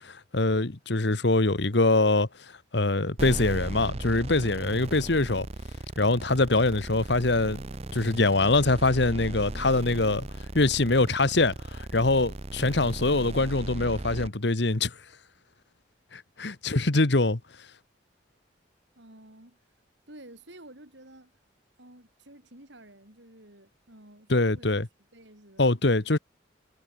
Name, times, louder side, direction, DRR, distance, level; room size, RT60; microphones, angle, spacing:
voice 1, 0.0-2.3 2.7-5.5 6.0-7.6 7.9-10.3 10.5-14.9 16.1-17.4 24.3-24.9 25.6-26.2, left 2 dB, 60° left, 1.4 m, -24 dB
sound 1, 3.2-14.3, right 2 dB, 35° right, 0.7 m, -37 dB
voice 2, 19.0-19.6 20.1-21.3 21.8-25.8, right 1 dB, 70° right, 7.4 m, -51 dB
head